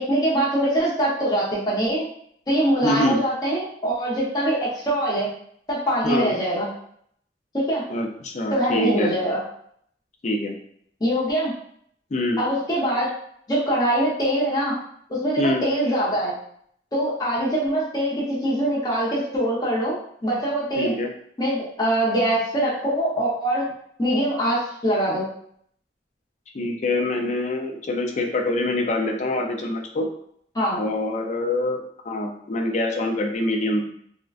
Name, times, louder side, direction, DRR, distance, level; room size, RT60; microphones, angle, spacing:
voice 1, 0.0-2.0 2.5-5.3 5.7-6.7 7.5-7.8 8.5-9.4 11.0-11.5 12.4-13.1 13.5-14.7 15.1-16.3 16.9-21.0 21.4-23.6 24.0-25.3 30.5-30.8, right 1 dB, 25° left, -8 dB, 0.8 m, -23 dB
voice 2, 2.8-3.2 6.0-6.3 7.9-9.1 10.2-10.6 12.1-12.4 15.4-15.6 20.8-21.1 26.5-30.1 30.8-31.8 32.0-33.9, left 1 dB, 40° left, 3 dB, 0.4 m, -25 dB
3.7 x 2.1 x 2.4 m, 0.66 s
head